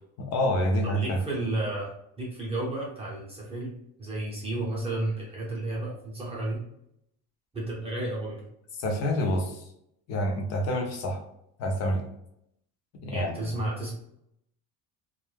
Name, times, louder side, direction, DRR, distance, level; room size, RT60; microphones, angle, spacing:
voice 1, 0.2-1.2 8.8-9.7 10.1-11.2 11.6-12.0 13.0-13.5, left 1 dB, 40° left, 3 dB, 0.6 m, -27 dB
voice 2, 0.8-1.9 2.2-6.6 7.5-8.4 13.1-13.9, right 2 dB, 15° right, -6 dB, 0.7 m, -32 dB
2.3 x 2.1 x 3.2 m, 0.77 s
cardioid pair, 145°, 39 cm